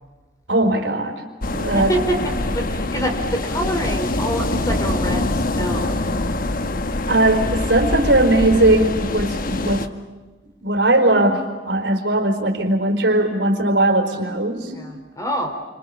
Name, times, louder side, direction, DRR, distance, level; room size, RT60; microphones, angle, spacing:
voice 1, 0.5-1.2 1.5-1.9 7.1-9.9 10.6-14.7, right 1 dB, 75° right, 3 dB, 4.6 m, -19 dB
sound 1, 1.4-9.9, left 2 dB, 50° left, 1.2 m, -24 dB
voice 2, 1.7-6.1 14.7-15.5, equal, 20° left, 4 dB, 4.0 m, -26 dB
29.5 x 26.5 x 7.2 m, 1.2 s
head